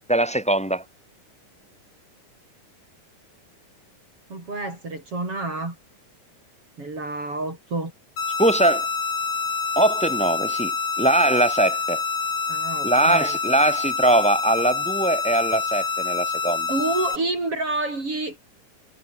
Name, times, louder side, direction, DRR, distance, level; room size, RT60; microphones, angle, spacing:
voice 1, 0.1-0.8 8.4-8.9 9.8-10.7 11.0-12.0 12.8-16.7, right 1 dB, ahead, 7.8 m, -21 dB
voice 2, 4.3-5.8 6.8-7.9 12.5-13.4 16.7-18.4, right 2 dB, 45° right, 7.3 m, -28 dB
sound 1, 8.2-17.2, left 4 dB, 50° left, 5.3 m, -27 dB
omnidirectional pair, 3.6 m